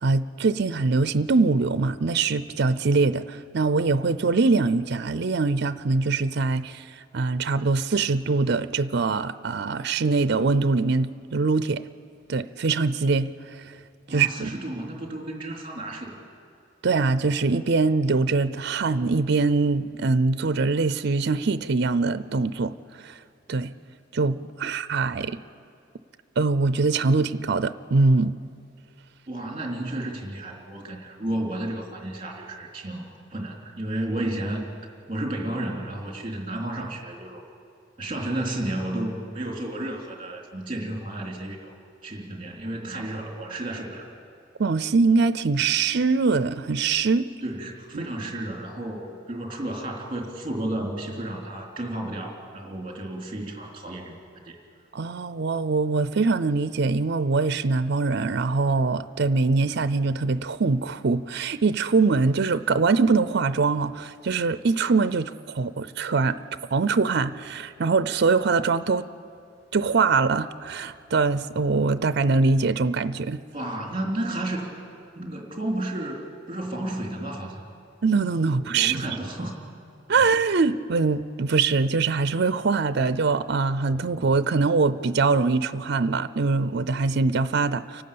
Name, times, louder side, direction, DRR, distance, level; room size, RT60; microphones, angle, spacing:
voice 1, 0.0-11.8 12.3-13.3 14.1-14.6 16.8-23.2 23.5-23.7 24.1-25.4 26.4-28.4 44.6-47.3 47.9-48.0 54.9-66.4 66.7-69.0 69.7-73.4 78.0-79.0 80.1-88.0, right 4 dB, 60° right, 14 dB, 0.5 m, -23 dB
voice 2, 14.1-16.2 29.3-34.6 35.1-37.4 38.0-41.7 42.0-44.1 47.4-54.2 54.4-54.6 73.5-74.7 75.1-77.7 78.7-79.6, right 1 dB, 25° right, 0 dB, 3.3 m, -32 dB
29.5 x 12.0 x 8.6 m, 2.4 s
head